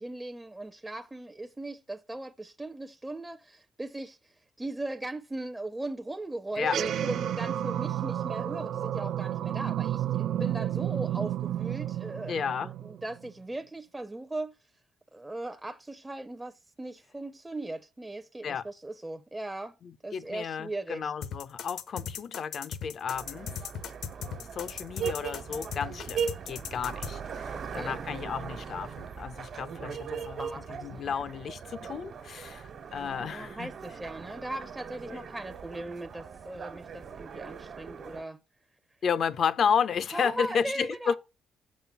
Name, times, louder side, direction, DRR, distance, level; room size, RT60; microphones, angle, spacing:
voice 1, 0.0-14.6 15.1-19.8 20.0-21.1 27.4-28.0 30.4-31.0 32.9-38.4 40.1-41.2, right 2 dB, 15° right, 0.6 m, -39 dB
sound 1, 6.6-13.3, right 11 dB, 75° right, 0.5 m, -31 dB
voice 2, 12.3-12.7 18.4-18.6 20.1-23.5 24.5-30.5 30.8-33.7 35.1-35.2 39.0-41.2, left 7 dB, 60° left, 0.6 m, -32 dB
sound 2, 21.2-27.1, left 8 dB, 80° left, 1.0 m, -37 dB
sound 3, 23.1-38.2, right 7 dB, 55° right, 1.3 m, -39 dB
7.4 x 6.5 x 5.6 m
cardioid pair, 90°, 0 cm